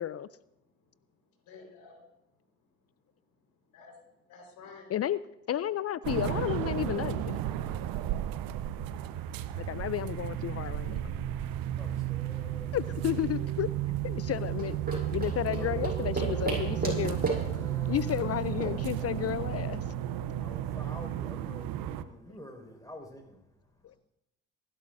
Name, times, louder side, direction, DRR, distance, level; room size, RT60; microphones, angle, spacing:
voice 1, 0.0-5.1 23.5-24.0, left 4 dB, 70° left, 1 dB, 4.7 m, -60 dB
voice 2, 5.5-7.4 9.6-11.1 12.7-13.7 14.0-14.8 15.1-17.2 17.9-19.8 23.8-23.9, left 11 dB, 45° left, 18 dB, 0.5 m, -32 dB
sound 1, 6.0-22.0, right 11 dB, 70° right, 0.9 m, -33 dB
voice 3, 11.8-13.2 15.5-18.4 20.4-24.0, left 1 dB, 10° left, 3 dB, 5.3 m, -47 dB
sound 2, 14.5-19.7, right 3 dB, 25° right, 7.2 m, -36 dB
27.0 x 12.0 x 2.7 m, 0.86 s
hypercardioid pair, 55°, 36 cm